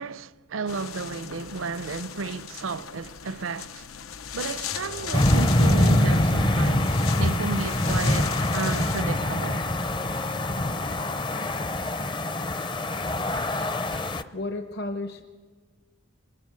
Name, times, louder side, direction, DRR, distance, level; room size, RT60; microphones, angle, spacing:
voice 1, 0.0-3.9 4.3-9.6, right 4 dB, 75° right, 0.6 m, -33 dB
sound 1, 0.7-9.0, left 9 dB, 85° left, 0.8 m, -38 dB
sound 2, 4.7-11.2, left 2 dB, 65° left, 2.7 m, -44 dB
sound 3, 5.1-14.2, left 1 dB, 20° left, 0.6 m, -24 dB
voice 2, 14.3-15.2, left 1 dB, 50° left, 0.9 m, -30 dB
26.0 x 20.5 x 7.6 m
head